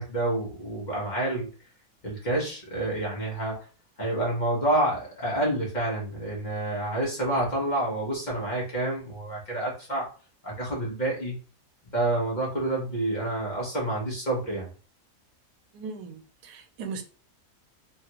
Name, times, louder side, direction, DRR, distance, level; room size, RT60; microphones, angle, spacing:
voice 1, 0.0-1.5 2.0-3.6 4.0-10.1 10.4-11.4 11.9-14.7, right 1 dB, 35° left, -3 dB, 0.9 m, -28 dB
voice 2, 15.7-17.0, right 5 dB, 90° right, 5 dB, 1.2 m, -38 dB
3.1 x 2.4 x 2.8 m, 0.37 s
omnidirectional pair, 1.6 m